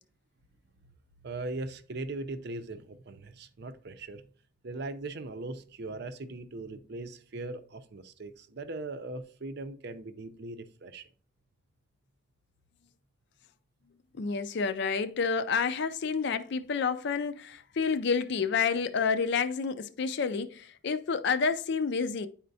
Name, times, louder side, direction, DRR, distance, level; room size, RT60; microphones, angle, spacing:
voice 1, 1.2-4.2 4.6-11.0, right 2 dB, 50° right, 0.6 m, -39 dB
voice 2, 14.2-22.3, left 5 dB, 55° left, 0.4 m, -29 dB
10.0 x 4.3 x 2.7 m
head